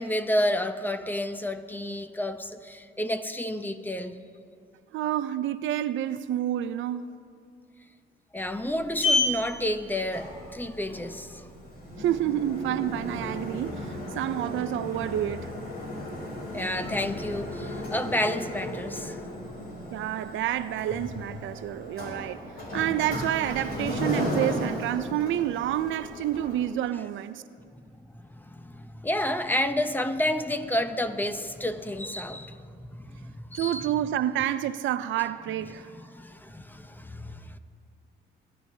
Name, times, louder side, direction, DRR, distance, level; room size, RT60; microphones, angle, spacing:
voice 1, 0.0-4.2 8.3-11.4 16.5-19.2 28.1-33.9 35.9-37.6, left 1 dB, 10° left, 0.7 m, -30 dB
voice 2, 4.9-7.1 12.0-15.5 19.9-22.4 22.7-27.4 33.5-35.9, right 12 dB, 75° right, 0.4 m, -29 dB
Sliding door, 8.4-26.7, left 1 dB, 50° left, 3.4 m, -34 dB
27.5 x 10.5 x 2.7 m
cardioid pair, 90°, 20 cm